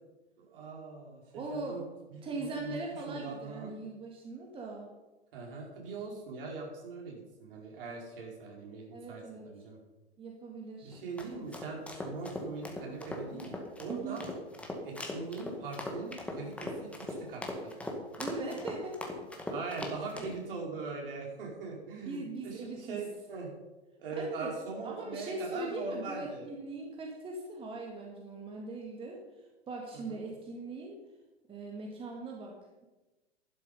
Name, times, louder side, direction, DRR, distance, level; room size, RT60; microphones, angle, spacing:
voice 1, 0.4-1.8 2.1-2.8 3.0-3.7 5.3-9.8 10.8-14.2 14.8-17.7 19.5-23.5 24.0-26.4 29.9-30.2, right 4 dB, 55° right, -1 dB, 4.9 m, -41 dB
voice 2, 1.3-1.8 2.2-4.9 8.9-9.5 10.2-11.0 13.9-14.2 18.2-19.1 22.1-23.0 24.1-24.5 24.8-29.2 29.7-31.0 31.5-32.5, right 2 dB, 15° right, 0 dB, 1.8 m, -40 dB
sound 1, 10.9-20.3, left 1 dB, 5° left, 1.9 m, -40 dB
12.0 x 11.5 x 5.4 m, 1.1 s
figure-of-eight pair, 110°, 33 cm